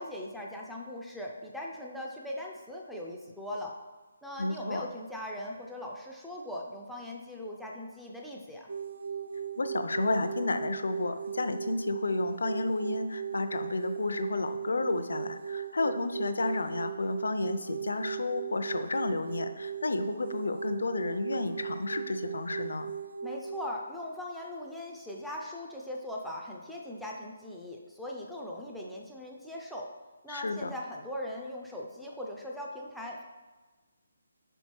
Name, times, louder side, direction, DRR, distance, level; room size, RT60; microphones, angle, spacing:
voice 1, 0.0-3.8 4.2-8.7 23.2-29.9 30.2-33.2, left 1 dB, ahead, -3 dB, 0.4 m, -40 dB
voice 2, 4.4-4.9 9.6-22.9 30.3-30.7, left 3 dB, 85° left, 9 dB, 0.5 m, -31 dB
sound 1, 8.7-23.7, right 7 dB, 60° right, 0.5 m, -38 dB
5.1 x 4.5 x 4.4 m, 1.2 s
hypercardioid pair, 170°, 0 cm